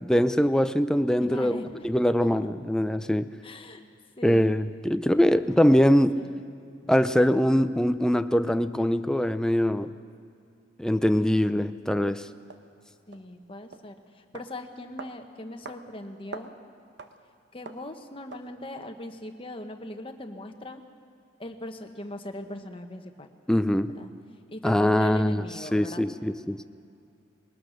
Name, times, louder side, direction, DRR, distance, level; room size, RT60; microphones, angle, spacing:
voice 1, 0.0-3.3 4.2-6.2 6.9-9.9 10.8-12.3 23.5-23.9 24.6-26.6, equal, 5° left, 10 dB, 0.4 m, -23 dB
voice 2, 1.2-1.9 3.4-3.8 4.2-4.6 5.7-6.4 6.8-6.9 13.1-16.5 17.5-20.8 21.4-23.3 24.0-24.1 24.5-26.1, left 1 dB, 30° left, 5 dB, 1.2 m, -40 dB
sound 1, 11.4-11.5 12.5-12.6 13.1-13.3 13.7-13.9 14.3-14.5 15.0-15.2 15.7-15.8 16.1-16.6 17.0-17.2 17.7-17.9 18.3-18.5, right 3 dB, 65° right, 1.0 m, -42 dB
21.0 x 19.5 x 6.4 m, 2.4 s
head